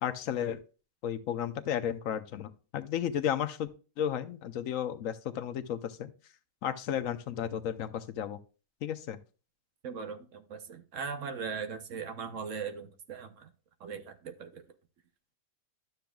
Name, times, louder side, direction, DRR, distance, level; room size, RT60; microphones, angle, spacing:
voice 1, 0.0-0.6 1.0-3.7 4.0-6.1 6.6-8.4 8.8-9.2, left 9 dB, 75° left, 10 dB, 1.0 m, -33 dB
voice 2, 9.8-13.5 13.8-14.6, right 6 dB, 65° right, 7 dB, 1.2 m, -39 dB
12.0 x 6.8 x 2.3 m, 0.35 s
omnidirectional pair, 1.5 m